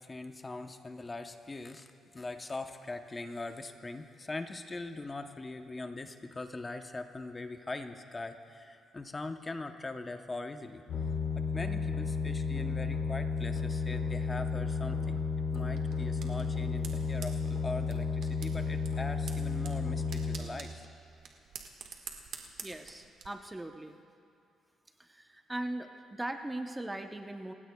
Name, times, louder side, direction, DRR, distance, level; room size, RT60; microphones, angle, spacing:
voice 1, 0.0-10.8 11.4-15.2 15.5-20.8, left 2 dB, 25° left, 6 dB, 0.8 m, -41 dB
sound 1, 10.9-20.4, left 4 dB, 75° left, 2.8 m, -32 dB
sound 2, 15.5-23.3, right 6 dB, 75° right, 1.4 m, -49 dB
voice 2, 22.6-23.9 25.0-27.5, right 1 dB, 15° right, 5 dB, 0.8 m, -39 dB
28.0 x 16.0 x 2.3 m, 2.4 s
cardioid pair, 90°, 0 cm